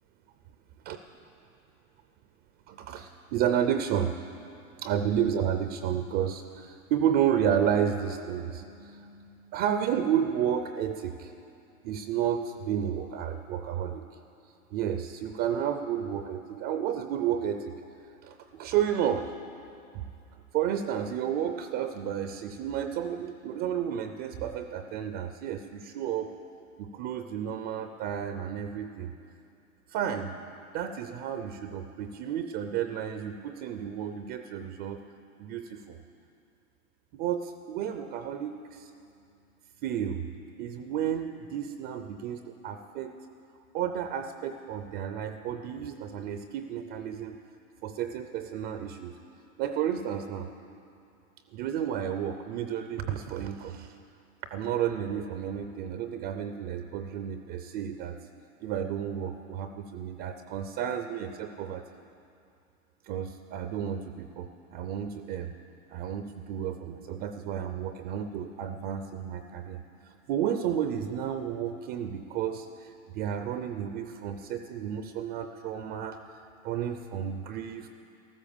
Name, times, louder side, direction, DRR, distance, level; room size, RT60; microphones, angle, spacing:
voice 1, 2.7-4.2 4.8-11.3 11.8-14.0 14.7-17.8 18.2-19.3 19.9-20.1 20.3-26.3 26.8-29.1 29.9-30.3 30.7-35.0 35.4-36.0 37.1-38.9 39.8-40.3 40.6-43.1 43.7-47.4 47.8-49.1 49.6-50.5 51.5-53.9 54.5-58.2 58.6-61.8 63.0-65.5 65.9-77.9, right 9 dB, 25° right, 8 dB, 0.5 m, -32 dB
14.5 x 13.5 x 7.0 m, 2.5 s
hypercardioid pair, 140°, 42 cm